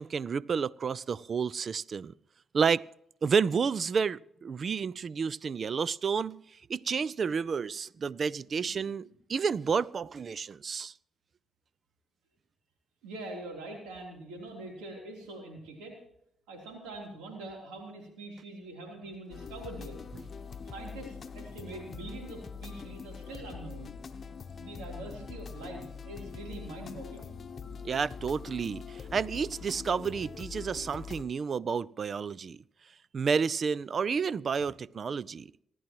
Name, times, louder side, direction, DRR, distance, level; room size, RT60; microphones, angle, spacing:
voice 1, 0.0-2.1 2.5-2.8 3.2-6.4 6.7-10.9 27.8-32.6 33.1-35.5, right 6 dB, 55° right, 0.5 m, -30 dB
voice 2, 13.0-16.0 16.5-20.0 20.7-24.0 24.6-27.4, right 2 dB, 85° right, 3.5 m, -44 dB
sound 1, 19.3-31.2, left 5 dB, 50° left, 0.9 m, -43 dB
26.0 x 11.0 x 3.1 m
supercardioid pair, 50°, 0 cm